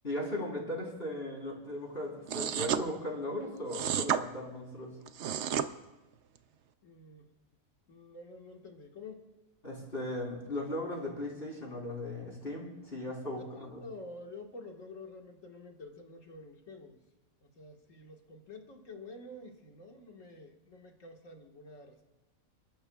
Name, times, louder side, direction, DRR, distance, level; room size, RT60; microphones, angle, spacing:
voice 1, 0.0-5.0 9.6-13.8, left 1 dB, 40° left, -2 dB, 3.9 m, -37 dB
sound 1, 2.3-2.8 3.7-4.2 5.1-5.7, right 9 dB, 60° right, 0.8 m, -30 dB
voice 2, 6.8-7.3 7.9-9.3 13.5-17.0 17.4-22.0, left 2 dB, 65° left, 2 dB, 2.0 m, -49 dB
29.0 x 12.5 x 2.3 m, 1.1 s
omnidirectional pair, 1.5 m